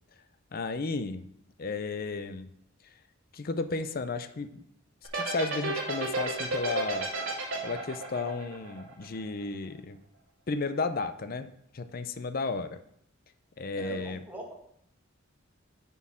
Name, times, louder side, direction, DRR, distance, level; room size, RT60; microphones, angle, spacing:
voice 1, 0.5-1.3 1.6-2.5 3.3-4.6 5.1-7.1 7.6-10.0 10.5-12.8 13.6-14.2, left 3 dB, 45° left, 10 dB, 0.5 m, -33 dB
sound 1, 5.0-9.4, right 2 dB, 85° right, 2.7 m, -32 dB
voice 2, 13.7-14.5, right 1 dB, 10° right, -2 dB, 1.6 m, -42 dB
6.9 x 4.6 x 6.1 m, 0.72 s
head